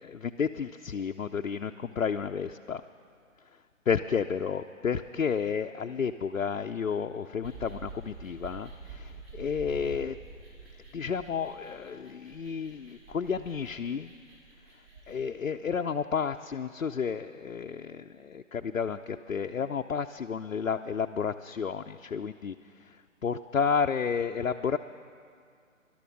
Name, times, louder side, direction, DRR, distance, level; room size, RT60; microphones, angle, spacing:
voice 1, 0.0-2.8 3.9-10.2 10.9-14.1 15.1-24.8, left 6 dB, 80° left, 5 dB, 0.6 m, -31 dB
sound 1, 7.4-15.2, right 4 dB, 45° right, 4.3 m, -47 dB
19.0 x 12.0 x 6.1 m, 2.2 s
figure-of-eight pair, 145°, 40 cm